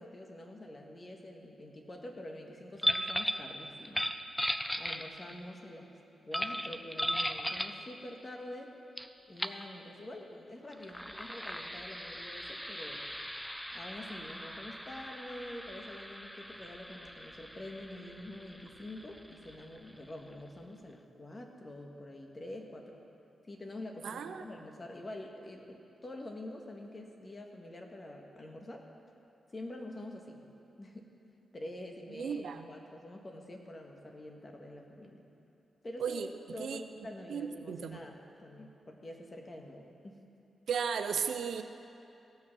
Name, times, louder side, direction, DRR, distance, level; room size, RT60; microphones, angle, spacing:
voice 1, 0.0-4.0 4.8-5.9 6.2-8.7 9.3-13.0 13.7-23.0 23.4-28.9 29.5-30.4 30.8-31.1 31.5-35.2 35.8-40.2, left 1 dB, 35° left, 2 dB, 1.7 m, -46 dB
sound 1, 2.8-3.5 3.9-5.4 6.3-7.8 9.0-9.1 9.4-9.6 10.7-20.0, equal, 5° left, 0.6 m, -37 dB
voice 2, 24.0-24.4 32.2-32.7 36.0-36.3 36.6-36.8 37.3-38.0 40.7-41.6, right 7 dB, 80° right, 8 dB, 0.6 m, -35 dB
17.0 x 6.4 x 6.1 m, 2.7 s
cardioid pair, 55°, 0 cm